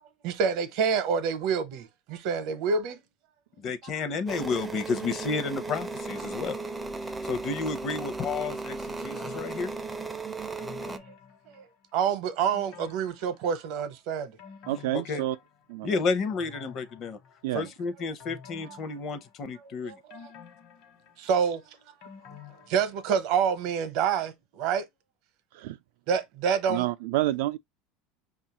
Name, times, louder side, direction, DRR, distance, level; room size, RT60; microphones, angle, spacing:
voice 1, 0.2-3.0 10.4-10.5 10.8-11.0 11.5-11.6 11.9-14.4 19.8-20.2 21.2-21.6 22.7-24.9 26.1-26.9, right 6 dB, 60° right, 0.7 m, -27 dB
voice 2, 3.6-6.6 7.2-9.7 14.9-15.2 15.8-17.2 17.5-20.0, left 4 dB, 40° left, 0.6 m, -31 dB
sound 1, 4.3-11.0, right 3 dB, 10° right, 0.4 m, -36 dB
sound 2, 9.2-10.0 10.6-12.0 12.5-13.8 14.2-15.8 16.3-17.6 18.2-19.6 20.1-23.4 23.7-23.8, left 7 dB, 60° left, 1.0 m, -50 dB
voice 3, 14.7-15.4 15.7-16.0 17.4-17.7 25.5-25.8 26.7-27.6, right 15 dB, 80° right, 0.4 m, -28 dB
5.3 x 2.4 x 2.9 m
supercardioid pair, 140°, 0 cm